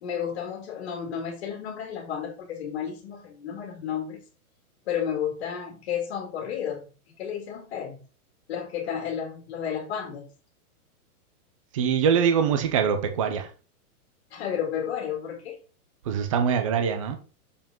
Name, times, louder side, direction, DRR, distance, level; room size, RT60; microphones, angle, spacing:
voice 1, 0.0-4.2 4.9-6.9 7.2-8.0 8.5-10.3 14.3-15.5, left 8 dB, 40° left, 2.1 m, -32 dB
voice 2, 11.7-13.5 16.0-17.2, right 7 dB, 20° right, 0.6 m, -23 dB
7.2 x 5.3 x 3.7 m
hypercardioid pair, 175°, 45 cm